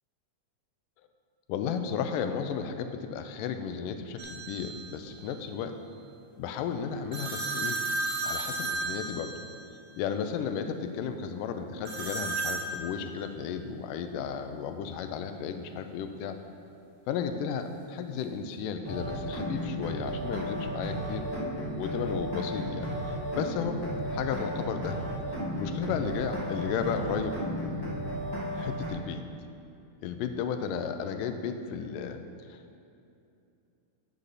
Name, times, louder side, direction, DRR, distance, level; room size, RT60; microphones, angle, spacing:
voice 1, 1.5-5.8 6.4-7.8 8.2-9.3 10.0-16.4 17.1-21.3 21.8-23.8 24.1-25.0 25.5-27.4 28.5-29.3 30.0-32.8, left 7 dB, 90° left, 8 dB, 2.2 m, -34 dB
sound 1, 4.2-4.9 7.1-9.8 11.9-12.7, right 3 dB, 60° right, 1.5 m, -33 dB
sound 2, 18.8-28.9, equal, 25° left, 0.4 m, -34 dB
8.7 x 8.3 x 4.0 m, 2.6 s
omnidirectional pair, 3.7 m